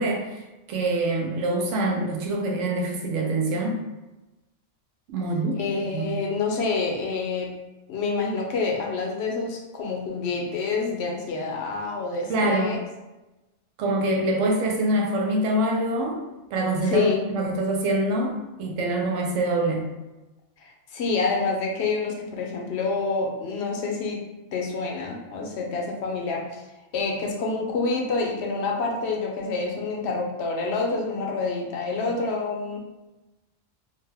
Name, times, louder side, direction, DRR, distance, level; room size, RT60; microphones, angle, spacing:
voice 1, 0.0-3.8 5.1-5.6 5.9-6.1 12.3-12.7 13.8-16.2 16.5-19.9, right 1 dB, 80° right, 1 dB, 0.9 m, -25 dB
voice 2, 5.5-7.5 7.9-12.8 16.8-17.2 20.6-24.2 24.5-26.4 26.9-32.8, left 4 dB, 70° left, 0 dB, 0.8 m, -27 dB
2.7 x 2.1 x 3.3 m, 1.0 s
omnidirectional pair, 1.3 m